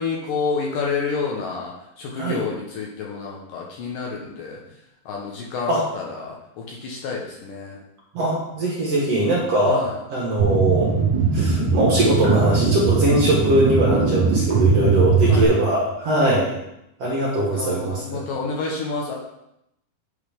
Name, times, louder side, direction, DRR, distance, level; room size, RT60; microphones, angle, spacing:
voice 1, 0.0-4.6 5.1-7.8 9.7-10.0 15.3-15.5 17.5-19.1, left 4 dB, 70° left, -2 dB, 2.2 m, -29 dB
voice 2, 8.1-9.8 10.1-10.9 11.3-16.6 17.0-18.2, right 1 dB, 55° right, -5 dB, 2.0 m, -21 dB
sound 1, 10.4-15.4, right 4 dB, 80° right, 0.9 m, -20 dB
9.8 x 3.9 x 5.1 m, 0.83 s
omnidirectional pair, 4.6 m